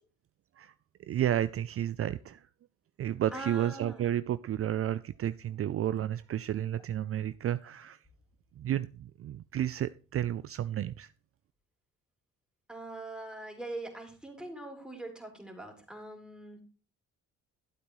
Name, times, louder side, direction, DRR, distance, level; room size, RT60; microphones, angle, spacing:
voice 1, 1.1-2.5 3.0-8.0 8.6-11.1, right 11 dB, 50° right, 14 dB, 0.4 m, -32 dB
voice 2, 3.3-4.1 12.7-16.6, right 2 dB, 5° right, 2 dB, 3.5 m, -42 dB
12.5 x 8.1 x 3.1 m, 0.36 s
cardioid pair, 90°, 30 cm